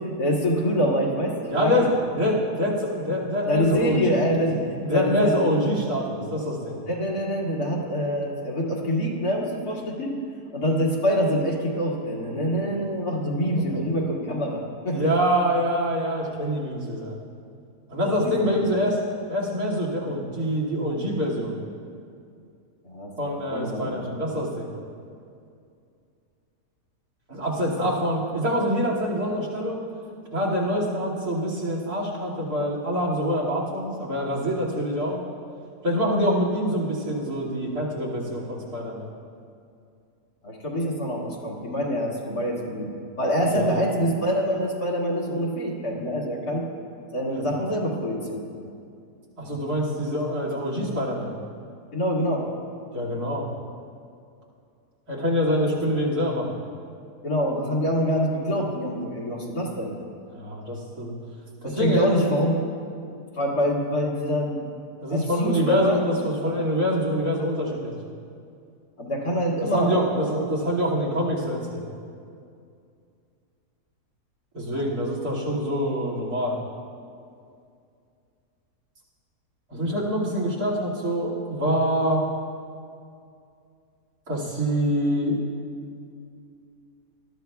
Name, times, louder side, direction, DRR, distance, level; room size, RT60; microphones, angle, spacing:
voice 1, 0.0-1.9 3.5-5.6 6.9-10.1 10.5-15.1 18.0-18.5 22.8-24.2 40.4-42.9 43.2-46.7 47.1-48.4 51.9-52.4 57.2-59.9 61.6-62.6 63.4-64.6 65.1-66.0 69.0-70.1 74.7-74.8, equal, 70° left, -3 dB, 2.5 m, -25 dB
voice 2, 1.5-6.8 14.9-17.1 17.9-19.0 19.3-21.6 23.2-24.7 27.3-29.8 30.3-35.2 35.8-39.1 43.4-43.9 47.3-47.8 49.4-51.3 52.9-53.5 55.1-56.6 60.4-61.2 61.6-62.3 65.0-68.0 69.7-71.8 74.5-76.6 79.7-82.2 84.3-85.4, equal, 70° right, -5 dB, 2.8 m, -25 dB
20.0 x 13.0 x 2.3 m, 2.4 s
omnidirectional pair, 1.7 m